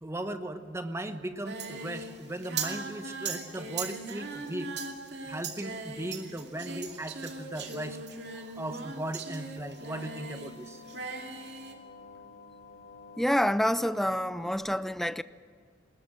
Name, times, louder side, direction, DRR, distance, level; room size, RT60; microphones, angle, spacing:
voice 1, 0.0-4.7 5.3-8.0 8.3-10.8, right 1 dB, 15° right, 1.1 m, -37 dB
Singing, 1.4-10.6 10.8-11.7, right 4 dB, 65° right, 2.6 m, -39 dB
sound 1, 9.6-14.6, left 4 dB, 65° left, 2.4 m, -51 dB
voice 2, 13.2-15.2, equal, ahead, 0.5 m, -27 dB
20.5 x 19.5 x 7.5 m
head